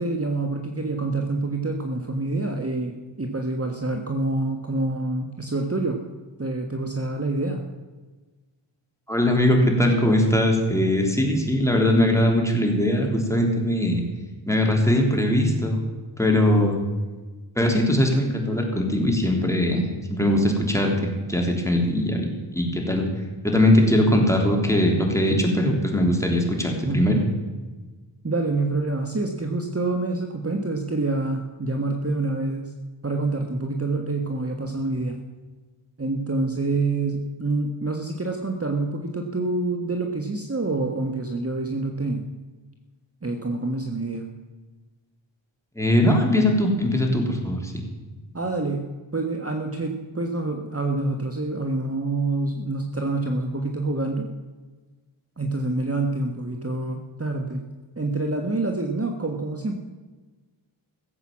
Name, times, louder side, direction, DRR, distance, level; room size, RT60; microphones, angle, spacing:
voice 1, 0.0-6.0 6.4-7.6 26.8-27.1 28.2-32.7 33.0-35.2 36.0-42.3 43.2-44.3 48.3-54.3 55.4-57.7 58.0-59.8, right 2 dB, 30° right, 3 dB, 1.4 m, -27 dB
voice 2, 9.1-14.0 14.5-15.8 16.2-16.8 17.5-23.0 23.4-27.2 45.7-47.8, left 1 dB, 5° left, 1 dB, 3.3 m, -21 dB
16.0 x 7.9 x 7.4 m, 1.3 s
cardioid pair, 45°, 50 cm